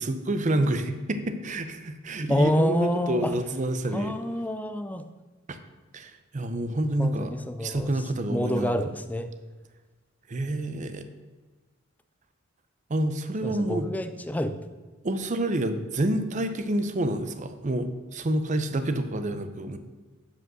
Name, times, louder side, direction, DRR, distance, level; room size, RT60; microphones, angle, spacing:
voice 1, 0.0-4.2 5.5-5.6 5.9-7.3 7.6-8.8 10.3-11.0 12.9-13.9 15.0-19.8, right 1 dB, 35° right, 9 dB, 0.6 m, -28 dB
voice 2, 2.3-3.3 3.9-5.0 7.0-7.9 8.3-9.3 13.4-14.6, equal, 10° left, 9 dB, 0.4 m, -27 dB
7.6 x 5.3 x 6.1 m, 1.3 s
head